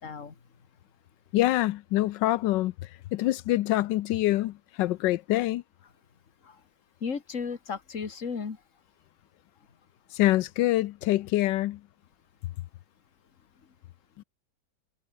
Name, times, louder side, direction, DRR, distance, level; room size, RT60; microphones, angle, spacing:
voice 1, 0.0-0.3 6.4-6.6 7.0-8.6, left 5 dB, 45° left, 2.2 m, -34 dB
voice 2, 1.3-5.6 10.1-11.8 14.2-14.3, left 16 dB, 85° left, 1.3 m, -25 dB
omnidirectional pair, 1.9 m